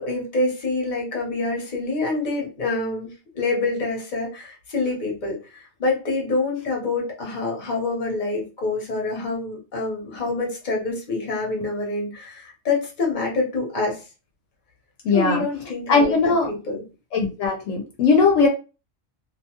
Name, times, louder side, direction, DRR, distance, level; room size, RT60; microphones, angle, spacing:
voice 1, 0.0-3.1 3.3-14.0 15.1-16.2 16.7-16.8, left 3 dB, 40° left, -1 dB, 1.0 m, -26 dB
voice 2, 15.0-15.4 15.9-16.5 17.1-18.5, left 4 dB, 75° left, 2 dB, 0.9 m, -19 dB
2.6 x 2.2 x 2.9 m, 0.32 s
omnidirectional pair, 1.3 m